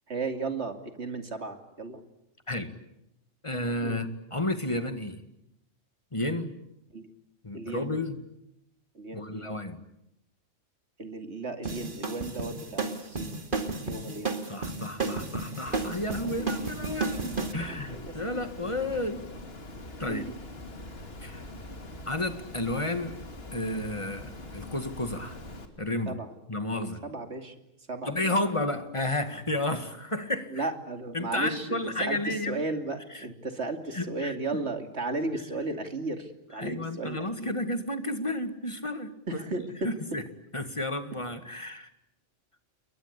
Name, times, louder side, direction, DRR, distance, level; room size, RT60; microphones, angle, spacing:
voice 1, 0.1-2.0 3.8-4.0 6.9-7.0 7.5-7.9 8.9-9.5 11.0-13.4 13.9-14.3 16.2-16.5 17.2-18.1 20.1-20.3 26.1-26.3 27.0-27.5 27.9-28.4 30.5-37.5 39.3-39.9, right 3 dB, 60° right, 6 dB, 2.8 m, -35 dB
voice 2, 3.4-5.2 6.1-6.6 7.4-8.2 9.1-9.8 14.4-19.2 20.0-20.3 21.2-21.5 22.1-23.2 23.5-25.4 25.8-26.2 26.5-27.0 28.0-30.7 31.1-32.6 33.1-33.3 33.9-34.6 36.5-40.2 40.5-41.9, left 1 dB, 25° left, 9 dB, 2.0 m, -32 dB
sound 1, 11.6-17.5, right 3 dB, 40° right, 2.5 m, -32 dB
Water, 15.7-25.7, left 1 dB, 50° left, 3.0 m, -43 dB
29.5 x 22.5 x 8.3 m, 0.83 s
omnidirectional pair, 1.3 m